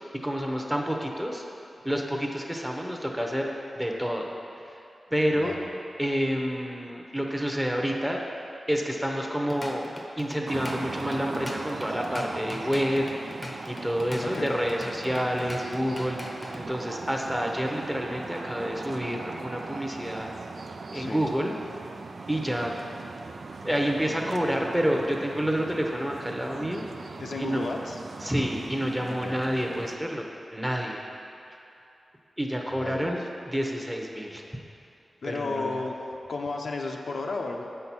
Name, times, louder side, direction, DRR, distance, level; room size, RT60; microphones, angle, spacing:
voice 1, 0.2-1.4 1.8-3.5 3.8-4.3 5.1-5.5 6.0-8.2 8.7-9.8 10.2-13.1 13.3-20.3 20.9-21.5 22.3-22.7 23.6-26.8 27.4-27.6 28.2-31.1 32.4-34.4 35.2-35.8, equal, 5° right, 0 dB, 0.8 m, -29 dB
voice 2, 5.3-5.7 14.2-14.6 20.9-21.3 27.2-28.0 29.2-29.4 32.7-33.3 35.2-36.0 36.3-37.6, left 3 dB, 65° left, 1 dB, 0.7 m, -33 dB
Drum kit / Drum, 9.3-16.7, left 1 dB, 20° left, 0.7 m, -40 dB
sound 1, 10.4-30.0, right 4 dB, 65° right, 0.4 m, -40 dB
7.6 x 5.6 x 6.1 m, 2.7 s
wide cardioid pair, 115°, 0 cm